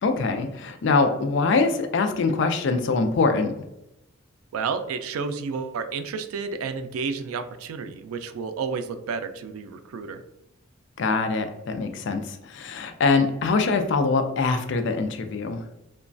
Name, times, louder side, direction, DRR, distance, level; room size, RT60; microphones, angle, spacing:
voice 1, 0.0-3.6 11.0-15.6, left 4 dB, 55° left, 7 dB, 0.3 m, -23 dB
voice 2, 4.5-10.2, right 5 dB, 90° right, 9 dB, 0.3 m, -31 dB
3.0 x 2.2 x 2.5 m, 0.87 s
head